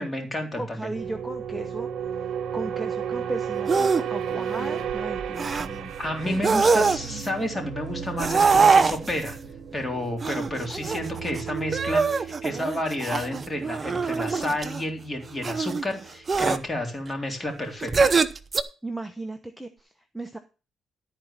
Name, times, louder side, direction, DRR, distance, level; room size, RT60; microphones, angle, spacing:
voice 1, 0.0-0.8 6.0-9.4 9.7-18.2, left 1 dB, 20° left, 2 dB, 3.6 m, -30 dB
voice 2, 0.6-5.9 6.2-6.5 6.7-6.9 18.8-20.4, right 1 dB, ahead, 6 dB, 1.0 m, -36 dB
sound 1, 0.9-15.6 15.8-16.1, right 8 dB, 70° right, 1.0 m, -34 dB
sound 2, 3.7-4.0 4.4-4.8 5.4-5.7 6.3-7.3 8.2-9.3 10.2-11.4 11.7-14.8 15.4-15.8 16.3-16.6 17.8-18.6, right 4 dB, 35° right, 0.8 m, -23 dB
12.5 x 4.7 x 7.3 m, 0.32 s
cardioid pair, 90°, 0 cm